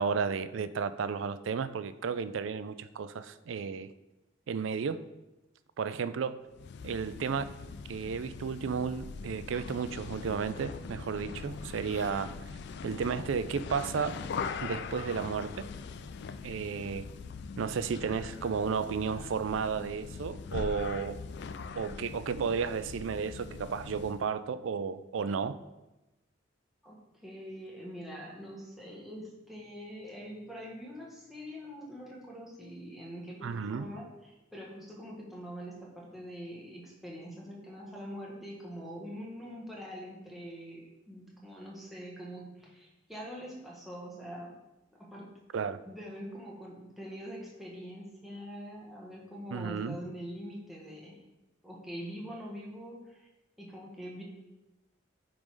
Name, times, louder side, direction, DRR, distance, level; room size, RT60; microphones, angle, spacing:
voice 1, 0.0-3.9 4.5-5.0 5.8-6.4 6.8-7.5 7.9-12.3 12.8-14.2 14.6-15.7 16.4-17.1 17.6-21.2 21.7-25.6 33.4-33.9 45.5-45.8 49.5-50.0, right 6 dB, 80° right, 14 dB, 0.4 m, -33 dB
sound 1, 6.5-24.3, left 5 dB, 60° left, 0.4 m, -41 dB
voice 2, 26.8-44.5 44.9-45.3 45.8-51.2 51.6-53.3 53.6-54.2, equal, ahead, -4 dB, 1.5 m, -44 dB
8.9 x 3.8 x 4.8 m, 1.0 s
head